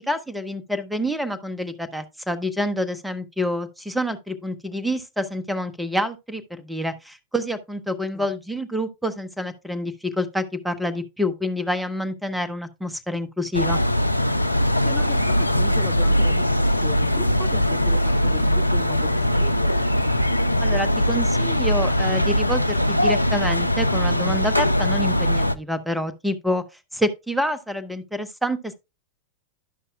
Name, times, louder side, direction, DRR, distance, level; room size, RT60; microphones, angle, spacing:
voice 1, 0.1-13.8 20.6-26.6 26.9-28.7, equal, 5° right, 0.8 m, -27 dB
sound 1, 13.5-25.6, equal, 85° left, 0.3 m, -21 dB
voice 2, 14.8-19.8, left 5 dB, 15° left, 0.4 m, -37 dB
12.0 x 5.5 x 2.3 m
figure-of-eight pair, 90°, 0 cm